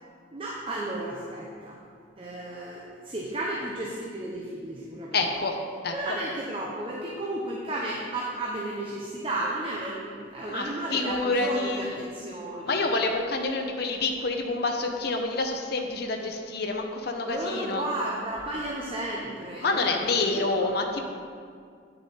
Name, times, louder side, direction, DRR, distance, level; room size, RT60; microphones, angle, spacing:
voice 1, 0.3-1.8 2.2-5.2 5.9-12.9 17.2-20.7, right 1 dB, 30° right, -3 dB, 0.8 m, -33 dB
voice 2, 5.1-5.6 5.8-5.9 10.4-10.6 10.9-11.9 12.7-17.9 19.6-21.0, left 3 dB, 60° left, 3 dB, 0.7 m, -27 dB
9.2 x 6.7 x 4.2 m, 2.2 s
head